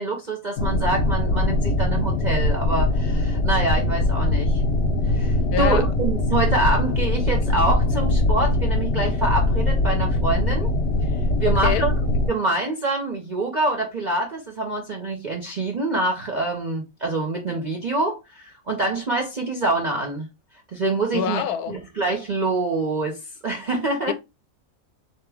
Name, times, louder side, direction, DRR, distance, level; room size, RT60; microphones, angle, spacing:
voice 1, 0.0-4.6 5.1-10.7 11.4-11.9 12.3-20.3 20.7-24.1, right 2 dB, 50° right, 0.5 m, -26 dB
sound 1, 0.6-12.3, left 2 dB, 60° left, 0.7 m, -22 dB
voice 2, 5.5-5.9 11.4-11.8 21.1-21.8 24.1-24.2, left 9 dB, 80° left, 1.1 m, -26 dB
4.0 x 2.9 x 3.4 m
omnidirectional pair, 1.6 m